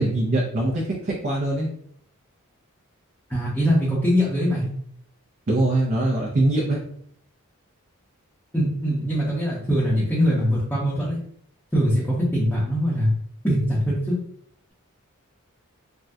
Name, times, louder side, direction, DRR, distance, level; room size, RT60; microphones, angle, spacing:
voice 1, 0.0-1.7 5.5-6.8, right 2 dB, 40° right, -3 dB, 0.5 m, -22 dB
voice 2, 3.3-4.7 8.5-11.2 11.7-13.1 13.4-14.2, equal, 10° left, -8 dB, 0.7 m, -22 dB
3.5 x 2.2 x 2.6 m, 0.66 s
head